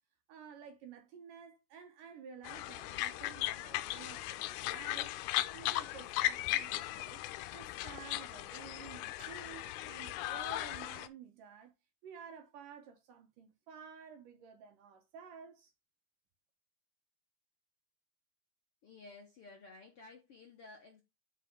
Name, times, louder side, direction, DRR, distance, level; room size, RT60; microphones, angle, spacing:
voice 1, 0.3-5.1 5.5-7.2 7.5-11.7 12.0-15.7, right 7 dB, 65° right, 2.5 m, -52 dB
sound 1, 2.5-11.1, left 15 dB, 85° left, 2.5 m, -37 dB
voice 2, 18.8-21.0, left 3 dB, 55° left, 1.6 m, -54 dB
7.4 x 6.3 x 3.8 m
omnidirectional pair, 4.6 m